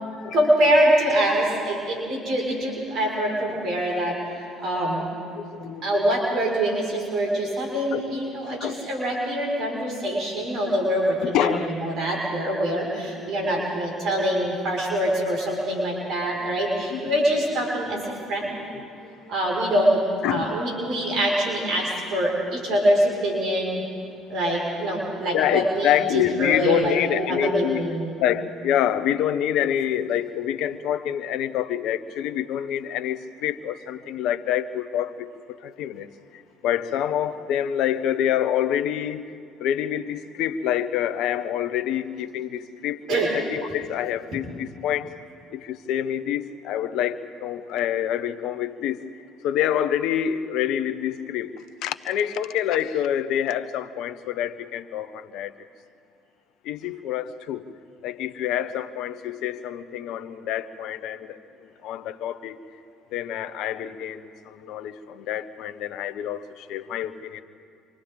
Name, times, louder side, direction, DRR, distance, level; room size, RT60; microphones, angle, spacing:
voice 1, 0.3-5.1 5.8-18.6 19.3-23.8 24.3-28.1 43.1-43.3, right 1 dB, 60° right, -2 dB, 5.2 m, -24 dB
voice 2, 5.4-5.8 7.9-8.0 8.5-8.8 10.6-10.7 11.2-11.7 13.5-13.7 16.4-16.5 16.9-17.0 18.7-19.3 20.2-20.5 25.3-27.9 28.2-45.1 45.5-49.0 49.4-51.5 51.8-55.5 56.6-57.7 58.0-62.6 63.1-67.4, left 10 dB, 70° left, 12 dB, 1.0 m, -27 dB
29.0 x 25.0 x 3.8 m, 2.3 s
hypercardioid pair, 60°, 0 cm